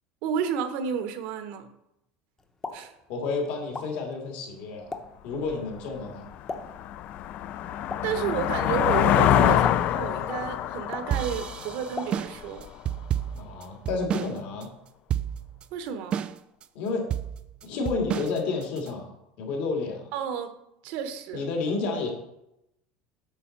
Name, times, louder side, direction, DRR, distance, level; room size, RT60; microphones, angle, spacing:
voice 1, 0.2-1.8 2.7-2.9 8.0-12.7 15.7-16.2 20.1-20.6 20.8-21.5, right 8 dB, 65° right, 9 dB, 1.0 m, -31 dB
Explosion, 2.4-12.6, left 3 dB, 15° left, 0.8 m, -43 dB
voice 2, 3.1-5.0 5.2-6.3 13.3-14.7 16.7-17.1 17.6-20.1 21.3-22.1, left 4 dB, 65° left, 1 dB, 2.4 m, -30 dB
sound 1, 5.5-5.6 6.1-12.7, left 11 dB, 45° left, 0.4 m, -25 dB
sound 2, 11.1-14.4 14.6-14.7 15.1-15.6 16.1-16.6 17.1-18.9, right 10 dB, 30° right, 0.3 m, -30 dB
8.4 x 4.2 x 5.9 m, 0.84 s
cardioid pair, 145°, 3 cm